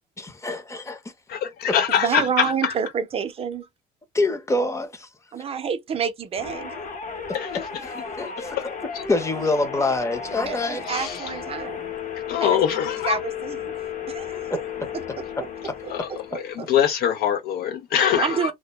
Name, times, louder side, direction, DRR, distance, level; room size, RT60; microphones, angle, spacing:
voice 1, 0.2-1.1 1.6-1.8 2.0-2.2 4.1-5.3 7.3-8.8 9.1-11.1 12.7-12.8 14.3-15.8, left 2 dB, 15° left, 0.6 m, -27 dB
voice 2, 1.3-2.7 7.3-7.5 8.6-8.7 10.9-11.3 12.3-13.2 15.9-16.1 16.7-18.5, left 9 dB, 70° left, 0.4 m, -23 dB
voice 3, 2.0-3.7 5.3-6.7 10.5-10.6 10.9-11.9 12.4-13.8 14.1-14.5 16.3-16.4 18.2-18.5, right 7 dB, 35° right, 0.5 m, -28 dB
sound 1, 6.4-16.7, left 7 dB, 50° left, 0.8 m, -34 dB
2.1 x 2.1 x 2.8 m
cardioid pair, 110°, 17 cm